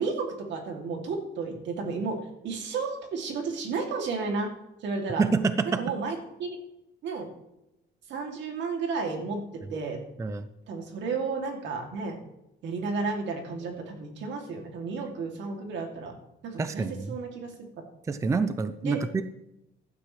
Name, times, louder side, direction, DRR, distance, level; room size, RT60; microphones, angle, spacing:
voice 1, 0.0-2.2 2.4-4.5 4.8-5.2 5.8-6.5 7.0-7.3 8.1-9.4 9.7-10.0 10.7-12.2 12.6-16.1 16.4-17.5 18.8-19.0, right 4 dB, 75° right, 2 dB, 2.7 m, -32 dB
voice 2, 5.2-5.8 10.2-10.5 16.6-17.2 18.1-19.2, right 4 dB, 15° right, 11 dB, 0.5 m, -27 dB
16.0 x 12.0 x 3.3 m, 0.88 s
cardioid pair, 155°, 19 cm